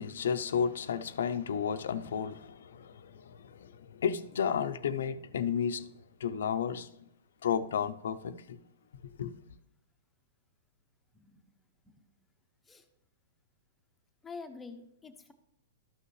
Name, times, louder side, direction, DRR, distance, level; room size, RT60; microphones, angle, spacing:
voice 1, 0.0-5.9 6.2-6.9 7.4-8.6 9.2-9.3, left 7 dB, 80° left, 0.5 m, -32 dB
voice 2, 14.2-15.3, left 4 dB, 10° left, 0.8 m, -47 dB
12.5 x 5.8 x 3.2 m
hypercardioid pair, 145°, 0 cm